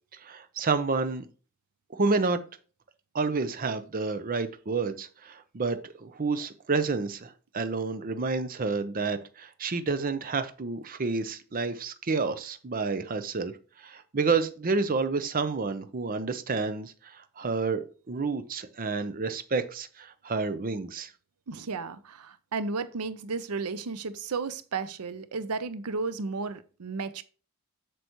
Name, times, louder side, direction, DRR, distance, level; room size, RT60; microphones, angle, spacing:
voice 1, 0.1-1.2 1.9-2.4 3.1-13.5 13.8-21.1, right 4 dB, 40° right, 0.6 m, -29 dB
voice 2, 21.5-27.2, right 4 dB, 85° right, 0.6 m, -33 dB
7.8 x 6.8 x 3.0 m
head